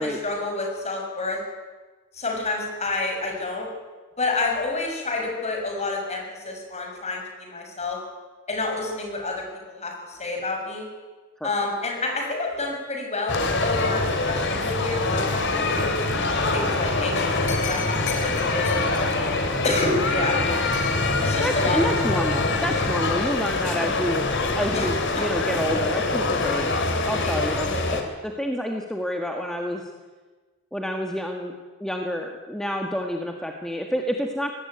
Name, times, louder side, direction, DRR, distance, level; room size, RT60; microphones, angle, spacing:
voice 1, 0.0-1.4 2.1-3.7 4.2-8.0 8.5-9.4 9.8-10.9 11.4-15.8 16.5-19.1 19.6-20.4 21.2-22.2 24.7-25.3 27.2-27.3, left 3 dB, 30° left, 2 dB, 6.4 m, -29 dB
sound 1, 13.3-28.0, left 3 dB, 60° left, 3.5 m, -24 dB
voice 2, 21.4-24.2 24.5-29.9 30.7-31.5 31.8-34.5, equal, ahead, 2 dB, 1.7 m, -28 dB
24.0 x 18.5 x 9.3 m, 1.3 s
head